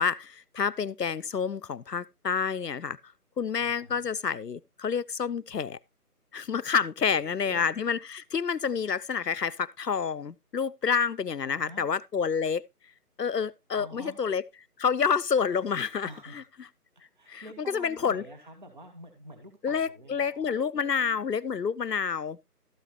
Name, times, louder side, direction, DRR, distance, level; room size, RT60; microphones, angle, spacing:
voice 1, 0.0-3.0 3.4-5.8 6.3-12.6 13.2-14.4 14.8-16.4 17.3-18.2 19.6-22.4, left 6 dB, 85° left, 0.7 m, -28 dB
voice 2, 3.6-4.0 7.1-7.7 11.3-11.8 13.7-14.2 16.0-16.4 16.9-21.2, right 1 dB, 30° right, 1.6 m, -48 dB
13.0 x 8.4 x 3.0 m
figure-of-eight pair, 155°, 47 cm